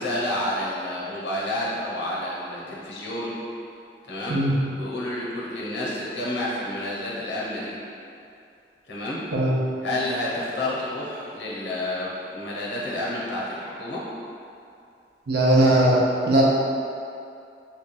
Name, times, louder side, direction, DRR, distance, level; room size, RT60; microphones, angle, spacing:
voice 1, 0.0-3.3 4.0-4.4 4.7-7.8 8.9-9.2 9.8-14.0, left 1 dB, 85° left, -6 dB, 0.9 m, -29 dB
voice 2, 15.3-16.4, right 1 dB, 65° right, -5 dB, 0.7 m, -19 dB
3.3 x 2.3 x 4.1 m, 2.5 s
head